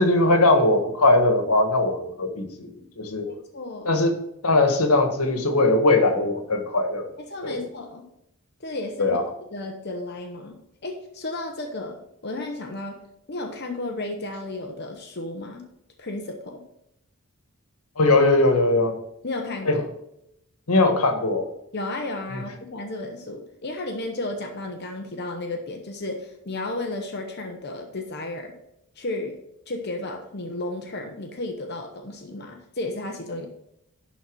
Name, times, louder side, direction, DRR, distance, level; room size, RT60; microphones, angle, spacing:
voice 1, 0.0-3.3 3.8-4.1 4.4-7.1 7.4-7.7 9.0-9.2 18.0-19.0 19.7-19.8 20.7-21.5 22.3-22.4, left 2 dB, 80° left, 5 dB, 1.5 m, -20 dB
voice 2, 3.3-4.0 7.2-8.0 8.6-9.2 9.5-13.0 13.3-15.6 16.0-16.6 19.2-19.8 21.7-28.5 29.0-29.4 29.7-33.5, left 2 dB, 45° left, 3 dB, 0.9 m, -33 dB
11.5 x 4.1 x 6.2 m, 0.80 s
head